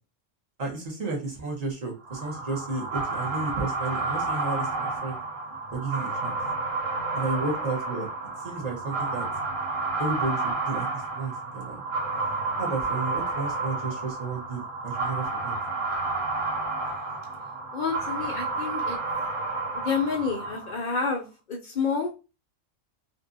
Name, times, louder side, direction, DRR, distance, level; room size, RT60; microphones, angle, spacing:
voice 1, 0.6-5.2 5.7-6.4 7.1-8.1 8.4-9.3 10.0-11.8 12.6-15.5, right 3 dB, 35° right, -2 dB, 0.8 m, -32 dB
sound 1, 2.0-20.9, right 3 dB, 70° right, 1.2 m, -31 dB
voice 2, 17.7-19.0 19.7-22.1, left 5 dB, 60° left, 1 dB, 0.5 m, -29 dB
2.5 x 2.5 x 2.5 m, 0.30 s
omnidirectional pair, 1.3 m